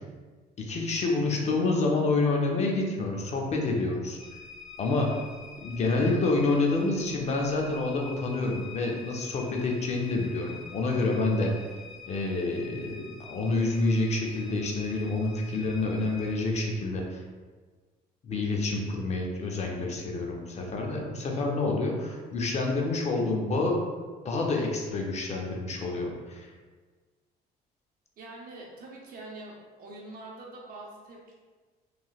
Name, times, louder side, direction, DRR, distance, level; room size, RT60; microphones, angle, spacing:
voice 1, 0.6-4.2 4.8-5.1 5.6-11.5 12.1-17.2 18.2-23.8 24.2-26.5, left 3 dB, 40° left, 0 dB, 0.5 m, -28 dB
sound 1, 4.2-16.4, left 4 dB, ahead, 1.2 m, -46 dB
voice 2, 28.2-31.3, right 2 dB, 60° right, -2 dB, 0.8 m, -44 dB
3.1 x 2.8 x 2.4 m, 1.4 s
cardioid pair, 110°, 17 cm